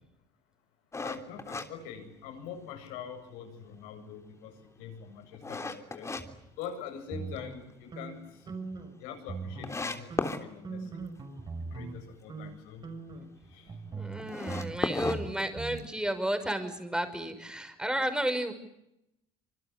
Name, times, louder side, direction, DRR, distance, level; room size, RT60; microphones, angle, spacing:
sound 1, 0.9-2.6 3.1-3.2 3.7-6.2 6.6-7.4 7.7-7.8 8.2-8.3 8.5-8.6 9.2-9.3 9.6-10.4 14.2-16.0, left 3 dB, 20° left, 3.3 m, -35 dB
voice 1, 1.0-6.1 6.6-8.4 9.0-10.9 11.7-12.9 13.5-13.7, left 8 dB, 75° left, 7 dB, 7.9 m, -44 dB
sound 2, 7.1-9.0 9.2-9.8 10.1-12.0 12.3-12.5 12.8-15.8, right 4 dB, 30° right, 6.8 m, -41 dB
voice 2, 13.9-18.5, right 1 dB, 5° right, 8 dB, 5.8 m, -32 dB
26.5 x 24.5 x 8.3 m, 0.83 s
supercardioid pair, 85°, 15 cm